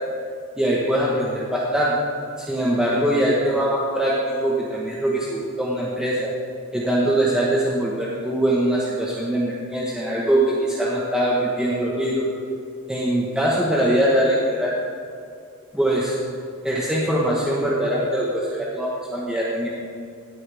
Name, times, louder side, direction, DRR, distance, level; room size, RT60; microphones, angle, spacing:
voice 1, 0.6-1.9 2.4-6.3 6.7-12.3 12.9-14.7 15.7-16.2 16.6-19.7, right 1 dB, 5° right, -6 dB, 1.3 m, -22 dB
17.5 x 11.0 x 3.5 m, 2.3 s
head